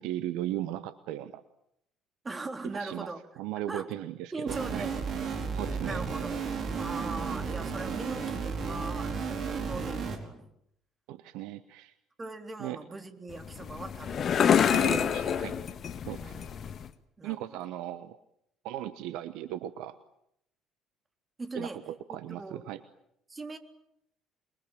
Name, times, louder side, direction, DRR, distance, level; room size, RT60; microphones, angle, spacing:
voice 1, 0.0-1.4 2.7-3.1 3.4-4.9 5.5-6.0 11.1-11.9 12.6-12.8 14.7-15.6 16.0-16.3 17.2-18.2 18.6-20.0 21.5-22.8, right 13 dB, 65° right, 13 dB, 1.0 m, -37 dB
voice 2, 2.2-3.2 3.7-3.9 4.3-5.0 5.8-6.4 6.8-10.5 12.2-14.6 15.0-15.2 16.2-16.5 17.2-17.4 21.4-21.8 22.1-22.7 23.3-23.6, right 3 dB, 25° right, 6 dB, 3.7 m, -40 dB
sound 1, 4.5-10.2, right 5 dB, 45° right, 4.6 m, -33 dB
sound 2, 13.3-16.9, left 8 dB, 45° left, 1.6 m, -27 dB
27.5 x 22.5 x 8.9 m, 0.76 s
figure-of-eight pair, 50°, 0 cm